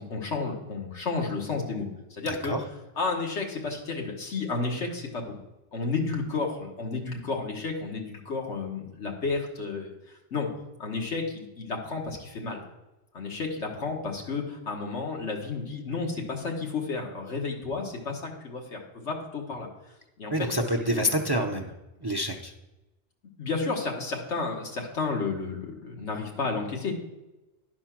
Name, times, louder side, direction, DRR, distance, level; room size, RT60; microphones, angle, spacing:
voice 1, 0.0-2.5 3.0-5.4 5.7-10.5 10.8-12.7 13.1-19.7 20.2-20.9 23.4-27.0, left 4 dB, 85° left, 1 dB, 1.7 m, -32 dB
voice 2, 20.3-21.7 22.0-22.5, equal, 30° right, 3 dB, 0.5 m, -27 dB
11.0 x 4.4 x 5.9 m, 1.0 s
omnidirectional pair, 1.2 m